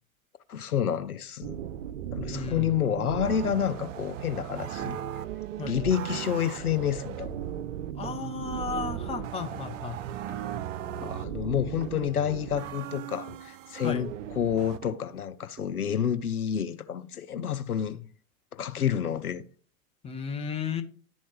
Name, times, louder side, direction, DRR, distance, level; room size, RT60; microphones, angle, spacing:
voice 1, 0.5-1.6 2.1-5.0 5.7-7.5 11.0-18.0 18.5-19.4, left 9 dB, 90° left, 0.6 m, -29 dB
sound 1, 1.4-14.8, right 10 dB, 60° right, 0.6 m, -37 dB
voice 2, 2.3-2.8 5.6-5.8 7.9-10.0 13.8-14.0 18.8-18.9 20.0-20.8, left 5 dB, 15° left, 0.9 m, -34 dB
sound 2, 4.8-5.1 5.6-6.7 7.2-7.5 8.0-8.4 8.8-9.1 9.5-9.9 10.3-10.7 11.0-11.4 11.8-12.1 12.5-12.9 13.3-13.7 14.0-14.4 14.8-15.1 15.6-15.9, right 2 dB, 20° right, 4.1 m, -49 dB
12.0 x 4.4 x 2.9 m
figure-of-eight pair, 95°, 43 cm